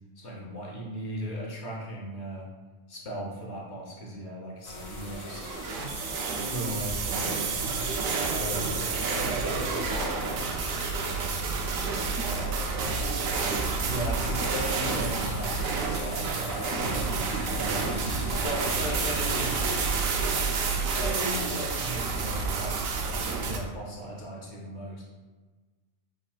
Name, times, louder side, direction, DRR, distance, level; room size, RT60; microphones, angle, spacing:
voice 1, 0.2-2.5 2.9-5.5 6.4-7.3 8.2-8.7 13.8-19.6 20.9-25.0, right 1 dB, 60° left, -3 dB, 1.1 m, -37 dB
sound 1, 4.6-19.9, left 3 dB, 85° left, 1.1 m, -43 dB
sound 2, 4.8-23.6, right 4 dB, 80° right, 1.0 m, -29 dB
voice 2, 8.4-10.2 10.6-11.8 12.2-13.4, equal, 50° right, -5 dB, 1.5 m, -43 dB
5.7 x 3.8 x 2.3 m, 1.3 s
omnidirectional pair, 1.4 m